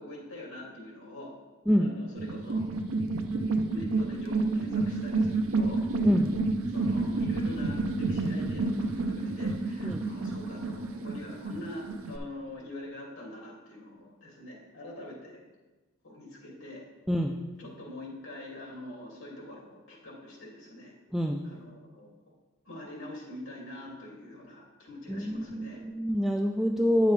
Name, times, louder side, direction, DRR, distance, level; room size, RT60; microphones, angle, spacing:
voice 1, 0.0-1.4 1.8-2.6 3.7-5.8 6.7-15.4 16.0-16.9 17.6-20.9 21.4-22.1 22.6-25.8, left 1 dB, 80° left, -3 dB, 2.5 m, -44 dB
sound 1, 2.2-12.2, right 3 dB, 85° right, 0.6 m, -29 dB
voice 2, 25.1-27.1, equal, ahead, 2 dB, 0.3 m, -26 dB
9.1 x 6.8 x 3.3 m, 1.2 s
head